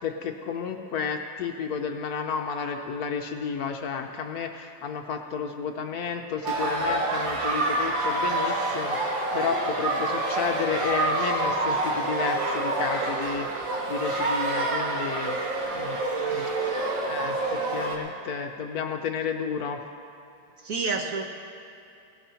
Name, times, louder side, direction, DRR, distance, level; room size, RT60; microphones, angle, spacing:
voice 1, 0.0-15.4 15.7-16.0 17.0-19.8, left 6 dB, 65° left, 4 dB, 1.0 m, -32 dB
sound 1, 6.4-18.0, right 2 dB, 85° right, 2.2 m, -27 dB
voice 2, 20.6-21.2, right 4 dB, 55° right, 2 dB, 1.1 m, -29 dB
17.0 x 16.5 x 2.8 m, 2.7 s
omnidirectional pair, 2.0 m